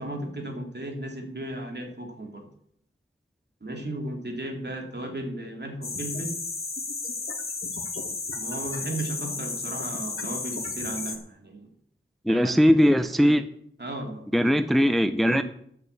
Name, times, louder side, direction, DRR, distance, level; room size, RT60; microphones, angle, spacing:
voice 1, 0.0-2.5 3.6-6.5 8.3-11.7 12.3-12.9 13.2-13.4 13.8-14.2 14.5-14.7 15.2-15.4, right 1 dB, 55° right, 3 dB, 2.6 m, -35 dB
sound 1, 5.8-11.2, left 4 dB, 85° left, 1.5 m, -33 dB
voice 2, 12.3-13.4 14.3-15.4, equal, ahead, 11 dB, 0.6 m, -20 dB
10.0 x 6.7 x 8.3 m, 0.67 s
wide cardioid pair, 60°, 21 cm